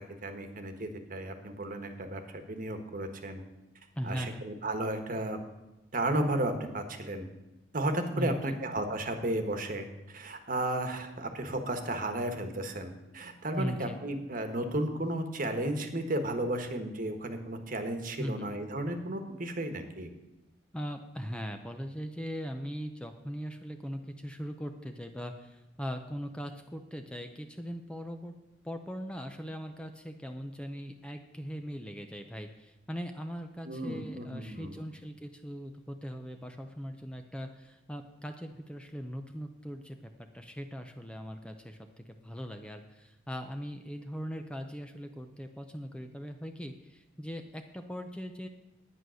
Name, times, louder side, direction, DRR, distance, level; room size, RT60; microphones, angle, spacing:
voice 1, 0.0-3.4 4.0-5.4 5.9-7.3 7.7-20.1 33.6-34.8, right 1 dB, 45° right, 7 dB, 1.3 m, -34 dB
voice 2, 4.0-4.4 8.2-8.6 13.5-14.0 18.2-18.5 20.7-28.3 28.6-48.5, equal, 5° left, 5 dB, 0.6 m, -40 dB
10.5 x 9.4 x 6.3 m, 1.0 s
head